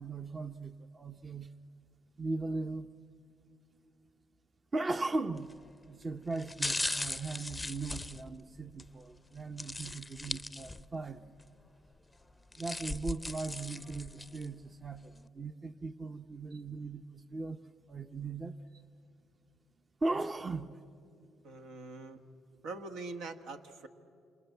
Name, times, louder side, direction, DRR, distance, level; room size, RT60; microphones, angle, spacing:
voice 1, 0.0-1.5 2.2-2.9 4.7-5.5 5.9-11.2 12.6-17.6 17.9-18.6 20.0-20.8, right 3 dB, 30° right, 10 dB, 0.7 m, -38 dB
sound 1, 5.4-5.7 6.3-8.9 9.6-11.0 11.4-11.5 12.3-14.5 15.0-15.1, left 2 dB, 10° left, 0.6 m, -38 dB
voice 2, 21.4-22.2 22.6-23.9, right 3 dB, 85° right, 7 dB, 1.4 m, -43 dB
27.0 x 26.5 x 8.2 m, 2.6 s
cardioid pair, 90°, 0 cm